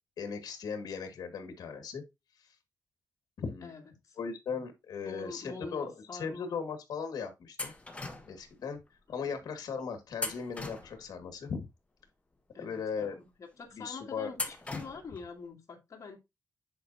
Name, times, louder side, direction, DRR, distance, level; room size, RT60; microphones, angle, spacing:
voice 1, 0.2-2.0 2.4-2.5 3.4-3.7 4.2-7.7 8.3-8.8 9.1-11.7 12.6-13.2 13.7-14.3, left 6 dB, 75° left, 1.7 m, -38 dB
voice 2, 3.6-4.2 5.0-6.6 9.2-9.3 12.5-16.2, left 4 dB, 55° left, 2.6 m, -45 dB
sound 1, 7.6-8.5 10.1-11.3 14.3-15.2, left 2 dB, 20° left, 1.5 m, -39 dB
9.9 x 5.0 x 2.7 m
wide cardioid pair, 115°, 7 cm